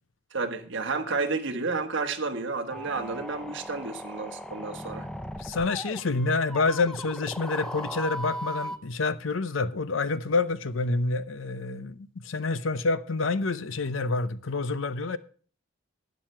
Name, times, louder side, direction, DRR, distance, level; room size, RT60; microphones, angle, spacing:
voice 1, 0.3-5.1, right 4 dB, 65° right, 1.4 m, -31 dB
sound 1, 2.7-8.8, equal, 5° left, 0.6 m, -38 dB
voice 2, 5.4-15.2, left 3 dB, 70° left, 0.7 m, -28 dB
12.0 x 9.5 x 4.5 m
head